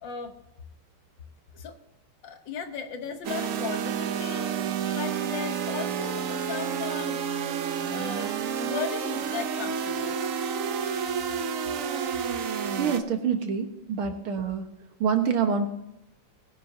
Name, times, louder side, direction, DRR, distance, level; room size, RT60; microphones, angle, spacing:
voice 1, 0.0-0.3 1.6-1.7 2.2-4.5 4.9-7.2 7.9-8.3 8.6-10.2, left 6 dB, 65° left, 7 dB, 1.7 m, -36 dB
sound 1, 3.2-13.0, right 7 dB, 65° right, 0.8 m, -30 dB
voice 2, 12.8-14.7 15.0-15.7, right 6 dB, 85° right, 5 dB, 2.2 m, -26 dB
20.5 x 10.5 x 2.8 m, 0.83 s
omnidirectional pair, 2.3 m